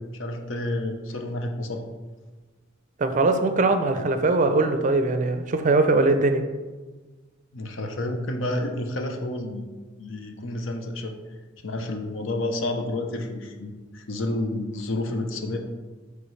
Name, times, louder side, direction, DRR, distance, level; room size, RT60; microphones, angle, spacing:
voice 1, 0.2-1.8 7.5-9.7 10.0-11.2 11.6-15.6, left 1 dB, 80° left, 4 dB, 0.7 m, -30 dB
voice 2, 3.0-6.4, right 3 dB, 40° right, 8 dB, 0.4 m, -21 dB
9.0 x 3.4 x 3.2 m, 1.3 s
head